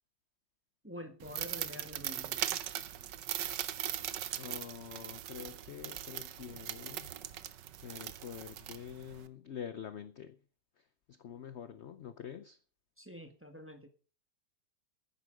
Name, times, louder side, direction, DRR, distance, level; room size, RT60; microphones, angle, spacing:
voice 1, 0.8-2.4 13.0-13.9, equal, 10° right, 1.3 m, -47 dB
sound 1, 1.2-9.3, right 11 dB, 90° right, 1.5 m, -40 dB
voice 2, 4.3-7.1 7.8-10.4 10.8-12.6, left 8 dB, 60° left, 0.7 m, -46 dB
10.0 x 9.8 x 6.3 m
omnidirectional pair, 1.9 m